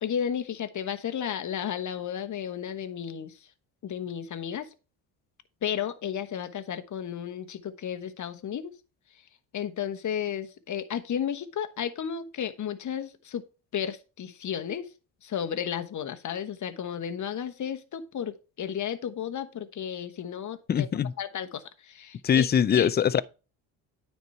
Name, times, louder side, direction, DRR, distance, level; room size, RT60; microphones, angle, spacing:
voice 1, 0.0-3.3 3.8-4.7 5.6-8.7 9.5-13.4 13.7-14.9 15.2-20.9 21.2-22.9, left 8 dB, 40° left, 1.1 m, -33 dB
voice 2, 20.7-21.1 22.2-23.2, left 8 dB, 25° left, 0.4 m, -22 dB
9.3 x 4.6 x 4.5 m
supercardioid pair, 70°, 44 cm